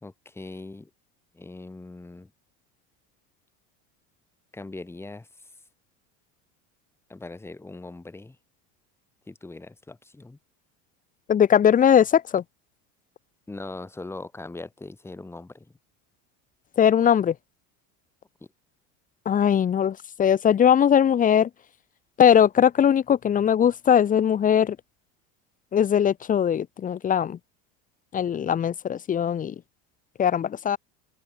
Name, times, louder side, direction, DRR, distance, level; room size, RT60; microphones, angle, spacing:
voice 1, 0.0-0.9 1.3-2.3 4.5-5.3 7.1-8.4 9.3-10.4 13.5-15.7, left 2 dB, 5° left, 2.7 m, -40 dB
voice 2, 11.3-12.4 16.8-17.3 19.2-21.5 22.2-24.8 25.7-27.4 28.1-29.5 30.2-30.8, left 8 dB, 20° left, 1.3 m, -20 dB
open air
cardioid pair, 155°, 36 cm